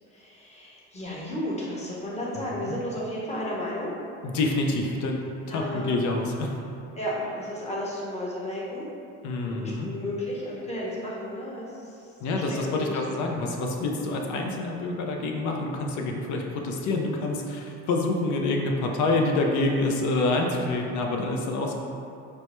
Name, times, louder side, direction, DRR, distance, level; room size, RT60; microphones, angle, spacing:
voice 1, 0.1-3.9 5.5-6.0 6.9-8.9 9.4-12.1 12.3-13.2, left 1 dB, 20° left, -5 dB, 0.9 m, -33 dB
voice 2, 4.2-5.2 5.5-6.5 9.2-9.9 12.2-21.7, left 2 dB, 65° left, 1 dB, 0.6 m, -27 dB
4.6 x 2.1 x 3.0 m, 2.6 s
supercardioid pair, 90°, 31 cm